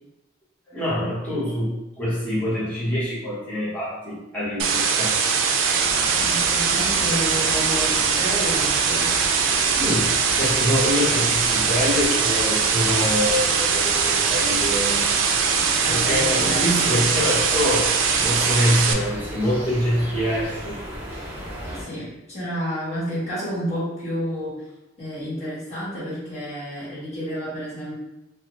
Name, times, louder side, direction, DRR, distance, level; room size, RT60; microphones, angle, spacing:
voice 1, 0.7-5.1 9.8-15.1 15.9-20.8, left 1 dB, 10° left, -11 dB, 1.0 m, -25 dB
sound 1, 4.6-18.9, right 6 dB, 85° right, 0.3 m, -21 dB
sound 2, 5.7-21.8, equal, 10° right, 0.5 m, -35 dB
voice 2, 6.2-9.1 15.8-17.1 21.7-24.6 25.0-27.9, equal, 35° left, -11 dB, 1.4 m, -30 dB
2.2 x 2.2 x 2.9 m, 0.96 s
head